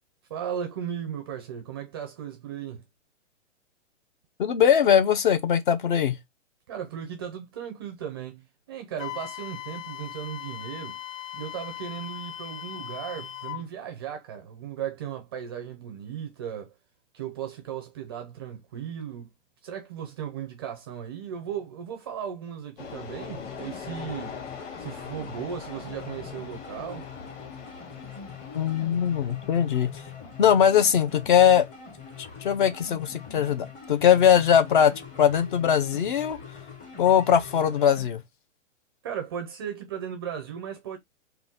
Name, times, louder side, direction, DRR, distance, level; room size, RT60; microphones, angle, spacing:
voice 1, 0.3-2.8 6.7-11.0 11.3-16.7 17.1-19.3 19.6-24.4 24.8-27.1 39.0-41.0, right 9 dB, 20° right, 0.4 m, -36 dB
voice 2, 4.4-6.2 28.5-30.0 30.4-31.7 32.4-34.9 35.2-36.4 37.0-38.2, left 8 dB, 40° left, 0.6 m, -21 dB
Wind instrument woodwind instrument, 9.0-13.6, left 13 dB, 85° left, 0.5 m, -39 dB
sound 1, 22.8-35.8, left 6 dB, 70° left, 1.1 m, -44 dB
sound 2, 23.2-38.1, left 6 dB, 20° left, 0.9 m, -43 dB
3.9 x 2.3 x 3.6 m
hypercardioid pair, 145°, 38 cm